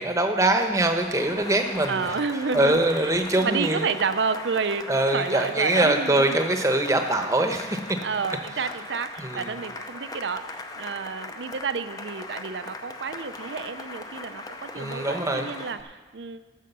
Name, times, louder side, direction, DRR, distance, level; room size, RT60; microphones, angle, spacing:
voice 1, 0.0-2.1 2.5-3.9 4.9-7.8 9.2-9.5 14.7-15.5, right 1 dB, 15° right, 5 dB, 0.9 m, -23 dB
Cheering / Applause, 1.0-15.8, left 2 dB, 20° left, 0.6 m, -39 dB
voice 2, 1.9-2.8 3.4-6.4 8.0-16.4, right 5 dB, 75° right, 11 dB, 0.6 m, -30 dB
13.5 x 6.5 x 6.7 m, 1.3 s
head